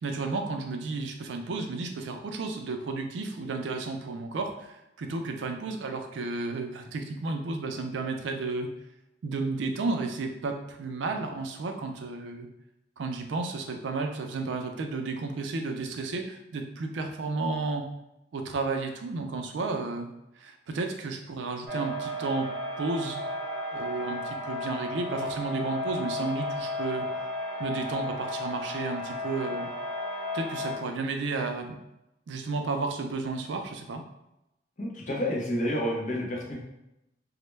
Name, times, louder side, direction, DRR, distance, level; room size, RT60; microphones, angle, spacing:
voice 1, 0.0-8.7 9.2-12.5 13.0-17.8 18.3-20.1 20.4-22.5 22.8-23.2 23.7-27.1 27.4-29.7 30.3-31.8 32.3-34.0, right 3 dB, 85° right, 5 dB, 0.4 m, -32 dB
sound 1, 21.7-30.8, left 1 dB, 15° right, 0.6 m, -34 dB
voice 2, 34.8-36.6, equal, 40° left, -2 dB, 0.6 m, -29 dB
2.1 x 2.0 x 3.1 m, 0.88 s
head